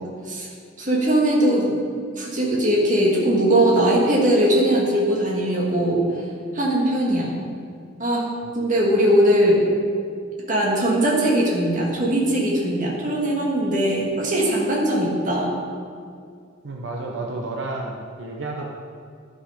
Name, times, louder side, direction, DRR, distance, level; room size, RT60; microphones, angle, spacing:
voice 1, 0.8-1.7 2.2-6.0 6.5-7.4 8.0-8.3 8.5-9.6 10.5-15.5, right 1 dB, 40° right, -3 dB, 1.8 m, -20 dB
voice 2, 16.6-18.6, right 2 dB, 70° right, 0 dB, 0.8 m, -31 dB
11.5 x 5.5 x 5.0 m, 2.2 s
head